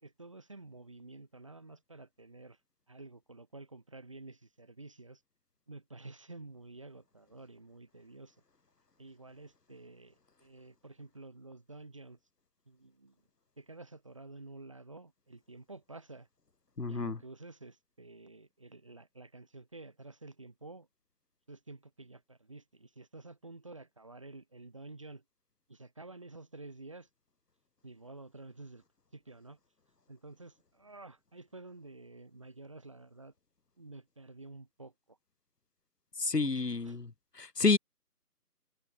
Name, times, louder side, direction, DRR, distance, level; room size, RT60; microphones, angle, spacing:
voice 1, 0.0-2.6 2.9-5.2 5.7-8.3 9.0-12.2 12.7-13.1 13.6-16.3 16.9-20.9 21.5-25.2 25.7-27.1 27.8-28.8 29.1-29.6 30.1-33.3 33.8-35.2 36.4-37.0, right 2 dB, 20° right, 3.3 m, -50 dB
voice 2, 16.8-17.2 36.2-37.1 37.4-37.8, left 4 dB, 90° left, 2.0 m, -29 dB
figure-of-eight pair, 180°, 47 cm